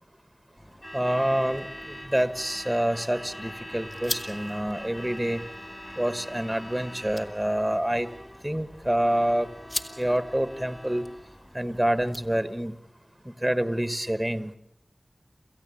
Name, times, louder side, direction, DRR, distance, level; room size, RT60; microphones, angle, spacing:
Truck / Alarm, 0.6-12.5, equal, 15° left, 2.7 m, -43 dB
voice 1, 0.9-5.4 6.0-8.1 8.4-9.5 10.0-11.0 11.5-12.7 13.4-14.5, right 1 dB, 10° right, 13 dB, 1.3 m, -27 dB
sound 1, 2.4-12.8, left 1 dB, 40° left, 2.2 m, -43 dB
28.0 x 15.0 x 8.5 m, 0.79 s
wide cardioid pair, 45°, 0 cm